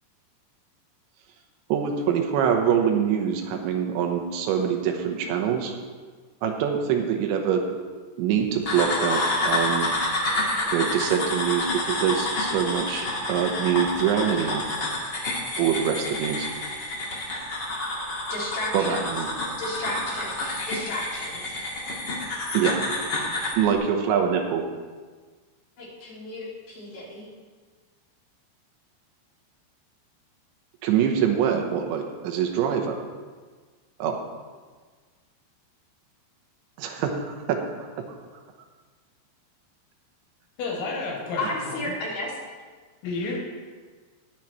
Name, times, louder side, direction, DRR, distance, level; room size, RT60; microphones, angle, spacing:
voice 1, 1.7-5.8 6.4-7.6 8.2-9.9 10.7-14.6 15.6-16.5 18.7-19.3 22.5-22.8 23.6-24.6 30.8-33.0 34.0-34.2 36.8-37.6, right 8 dB, 85° right, 4 dB, 3.2 m, -24 dB
sound 1, 8.7-23.6, left 2 dB, 65° left, 1.0 m, -29 dB
voice 2, 18.3-19.1 19.6-21.6 25.8-27.3 41.4-42.4, left 2 dB, 45° left, -6 dB, 3.5 m, -33 dB
voice 3, 40.6-41.4 41.7-41.9 43.0-43.4, left 3 dB, 90° left, -2 dB, 4.3 m, -30 dB
20.5 x 7.4 x 3.1 m, 1.5 s
omnidirectional pair, 5.2 m